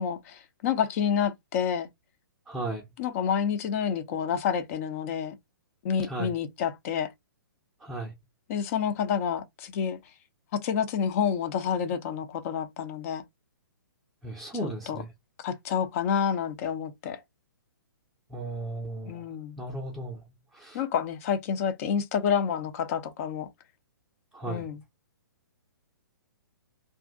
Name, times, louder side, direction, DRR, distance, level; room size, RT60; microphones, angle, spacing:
voice 1, 0.0-1.9 3.0-5.4 5.8-7.1 8.5-10.0 10.5-13.2 14.6-15.0 15.4-17.2 19.1-19.6 20.7-23.5 24.5-24.8, left 7 dB, 40° left, 0.7 m, -29 dB
voice 2, 2.5-2.9 6.1-6.3 7.8-8.1 14.2-15.1 18.3-19.2 19.6-20.2 20.5-20.8 24.3-24.7, right 2 dB, 5° right, 0.7 m, -35 dB
2.6 x 2.5 x 3.6 m
figure-of-eight pair, 130°, 11 cm